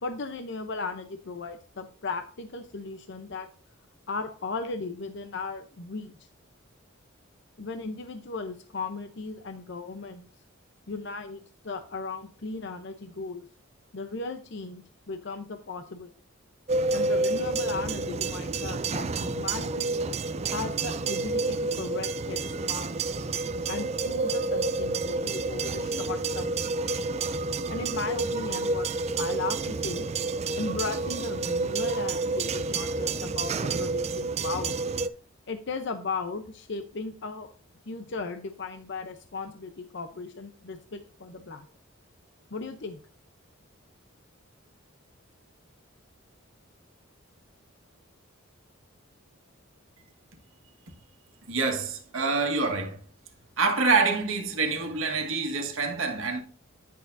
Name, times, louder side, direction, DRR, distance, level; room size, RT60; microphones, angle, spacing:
voice 1, 0.0-3.5 4.1-6.2 7.6-10.3 10.9-13.4 13.9-16.1 16.9-19.9 20.5-23.0 23.7-26.9 27.7-30.1 30.6-34.8 35.5-37.5 37.9-41.7 42.5-43.0, left 3 dB, 60° left, 0.7 m, -36 dB
sound 1, 16.7-35.1, right 3 dB, 30° right, 0.4 m, -29 dB
voice 2, 51.5-53.0 53.6-56.4, right 4 dB, 75° right, 1.5 m, -26 dB
10.0 x 6.5 x 2.6 m
head